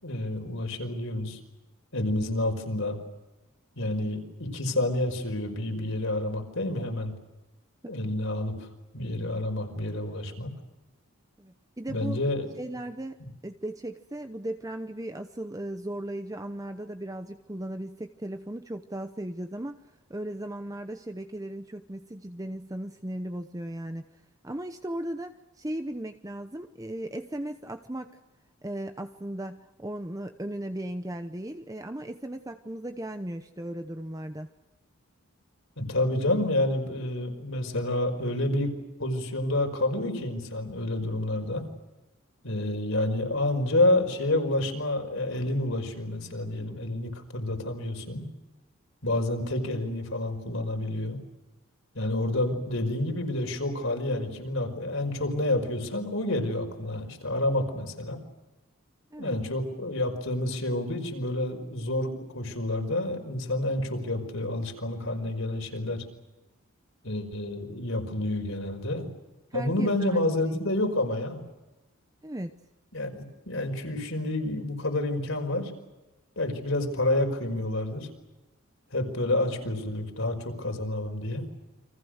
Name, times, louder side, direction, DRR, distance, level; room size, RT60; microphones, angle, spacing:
voice 1, 0.0-1.4 1.9-3.0 3.7-7.1 7.9-8.7 8.9-10.5 11.9-12.5 35.8-38.7 39.0-41.6 42.4-48.2 49.0-51.2 51.9-58.2 59.2-66.0 67.0-69.1 69.5-71.4 72.9-75.7 76.3-78.1 78.9-81.4, left 1 dB, 70° left, 4 dB, 5.1 m, -29 dB
voice 2, 11.4-12.2 12.6-13.1 13.4-19.8 20.1-24.0 24.4-28.2 28.6-34.5 59.1-59.4 69.5-70.2 70.5-70.6 72.2-72.5, right 1 dB, 15° right, 8 dB, 0.8 m, -36 dB
29.5 x 25.0 x 6.5 m, 1.0 s
head